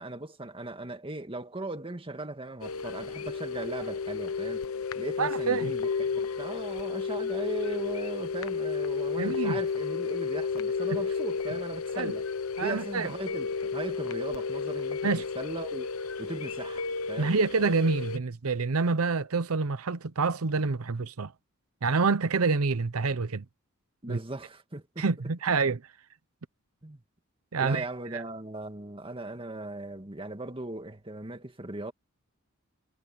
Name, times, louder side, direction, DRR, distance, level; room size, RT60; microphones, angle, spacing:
voice 1, 0.0-4.7 4.9-12.3 12.6-15.9 16.2-17.4 24.0-25.1 26.8-27.0 27.6-31.9, right 2 dB, 25° right, 2.0 m, -38 dB
sound 1, 2.6-18.2, left 5 dB, 75° left, 0.9 m, -32 dB
voice 2, 5.2-5.7 9.2-9.6 12.0-12.1 12.6-13.1 15.0-15.2 17.2-21.3 21.8-23.4 24.1-24.2 25.0-25.8 27.5-27.9 28.1-28.2, right 4 dB, 80° right, 0.8 m, -27 dB
head